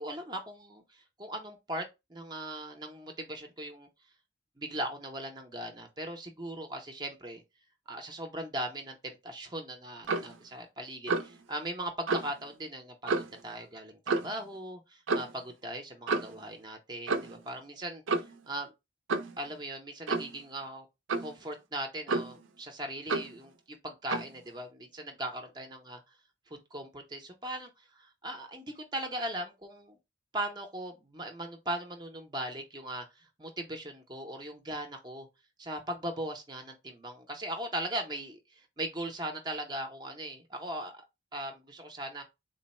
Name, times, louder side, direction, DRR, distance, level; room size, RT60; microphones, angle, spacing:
voice 1, 0.0-1.8 2.1-3.9 4.6-7.4 7.9-18.7 19.4-20.9 21.2-26.0 26.5-30.0 30.3-35.3 35.6-40.9 41.3-42.2, right 1 dB, 20° right, 0.6 m, -39 dB
Clock, 10.0-10.4 11.1-11.4 12.1-12.3 13.1-13.4 14.1-14.4 15.1-15.3 16.1-16.4 17.1-17.4 18.1-18.4 19.1-19.4 20.1-20.4 21.1-21.4 22.1-22.5 23.1-23.4 24.1-24.3, right 3 dB, 85° right, 0.5 m, -31 dB
3.8 x 2.0 x 4.1 m
head